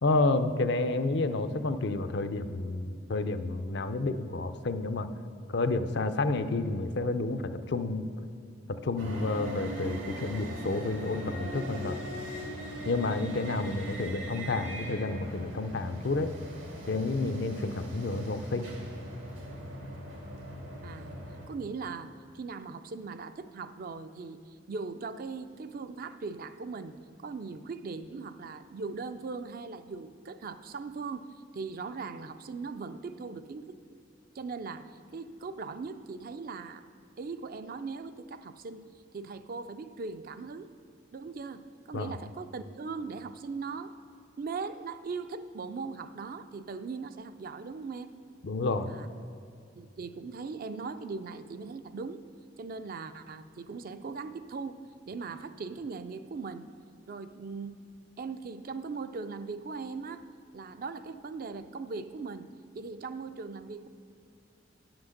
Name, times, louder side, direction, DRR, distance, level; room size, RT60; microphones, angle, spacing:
voice 1, 0.0-5.1 5.5-8.1 8.7-11.9 12.9-16.3 16.9-18.7 41.9-42.1 48.4-48.9, left 2 dB, 60° left, 9 dB, 0.5 m, -30 dB
sound 1, 9.0-21.5, equal, 85° right, 1.9 m, -40 dB
voice 2, 20.8-21.1 21.5-27.0 27.2-34.0 34.3-36.9 37.2-38.9 39.1-40.7 41.1-43.9 44.4-48.1 48.9-49.1 49.8-52.2 52.6-54.8 55.1-56.7 57.1-57.9 58.2-60.2 60.5-62.5 62.7-63.9, right 4 dB, 50° right, 10 dB, 0.4 m, -39 dB
9.8 x 6.0 x 6.4 m, 2.5 s
head